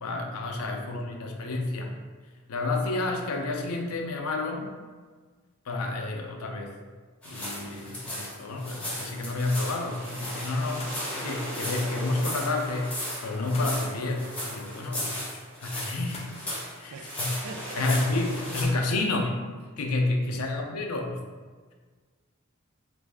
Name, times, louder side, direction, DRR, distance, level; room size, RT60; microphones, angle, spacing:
voice 1, 0.0-1.9 2.5-4.7 5.7-6.7 7.2-12.9 13.2-16.5 16.8-17.3 17.8-19.4 19.8-21.2, left 2 dB, 85° left, 2 dB, 0.5 m, -30 dB
sound 1, 7.2-18.6, left 1 dB, 5° left, 0.9 m, -36 dB
sound 2, 10.6-19.0, left 2 dB, 30° left, 0.5 m, -52 dB
voice 2, 16.9-17.9 20.4-20.7, right 4 dB, 85° right, 4 dB, 0.4 m, -44 dB
3.2 x 2.5 x 3.4 m, 1.5 s
head